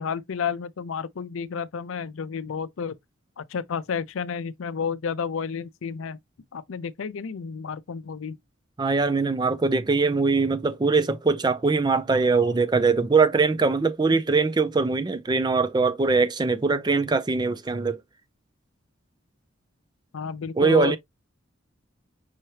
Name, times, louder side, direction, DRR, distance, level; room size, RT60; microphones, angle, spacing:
voice 1, 0.0-2.9 3.4-6.2 6.5-8.4 20.1-21.0, left 6 dB, 70° left, 0.5 m, -31 dB
voice 2, 8.8-18.0 20.6-21.0, right 4 dB, 20° right, 0.3 m, -22 dB
5.6 x 2.8 x 3.2 m
head